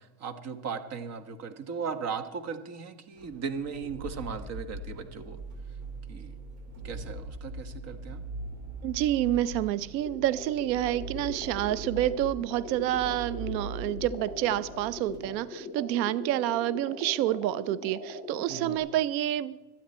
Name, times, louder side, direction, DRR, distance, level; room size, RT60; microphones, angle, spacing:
voice 1, 0.0-5.4 6.1-6.3 6.8-8.2 18.5-18.8, right 6 dB, 30° right, 10 dB, 1.3 m, -37 dB
sound 1, 3.1-15.3, right 2 dB, 60° right, 4.9 m, -41 dB
voice 2, 8.8-19.6, right 13 dB, 90° right, 18 dB, 0.7 m, -28 dB
sound 2, 10.1-18.8, left 2 dB, 30° left, 4.6 m, -41 dB
25.0 x 9.3 x 4.3 m, 1.2 s
supercardioid pair, 150°, 50 cm